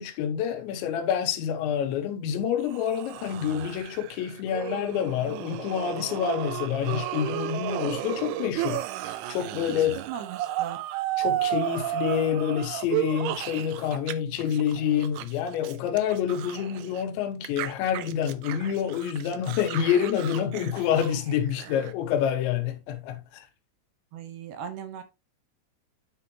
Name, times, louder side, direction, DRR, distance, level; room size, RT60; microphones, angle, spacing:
voice 1, 0.0-10.0 11.2-23.4, left 9 dB, 85° left, 3.2 m, -27 dB
sound 1, 2.6-14.1 14.4-17.0 17.4-21.9, right 14 dB, 90° right, 2.3 m, -33 dB
voice 2, 9.5-10.8 24.1-25.0, right 8 dB, 70° right, 2.6 m, -38 dB
9.7 x 4.9 x 2.9 m
omnidirectional pair, 5.2 m